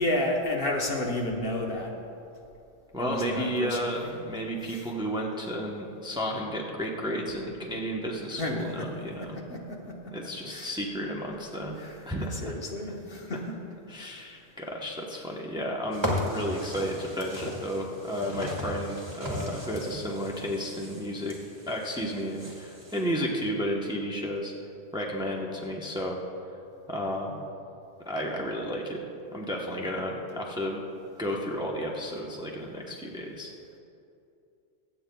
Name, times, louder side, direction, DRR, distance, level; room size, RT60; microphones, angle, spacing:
voice 1, 0.0-2.0 3.0-4.1 4.7-4.8 8.4-8.9 9.2-10.1 10.5-10.7 11.8-12.0 12.3-13.6 14.1-14.3, left 1 dB, 55° left, 0 dB, 1.2 m, -31 dB
voice 2, 2.9-9.4 10.1-12.5 13.9-21.3 21.7-24.5 24.9-26.2 26.9-27.4 28.0-29.0 29.3-30.8 31.2-33.5, equal, 5° right, -1 dB, 0.9 m, -32 dB
sound 1, 15.9-23.1, left 1 dB, 25° right, 2.0 m, -36 dB
24.5 x 8.6 x 2.3 m, 2.6 s
omnidirectional pair, 1.2 m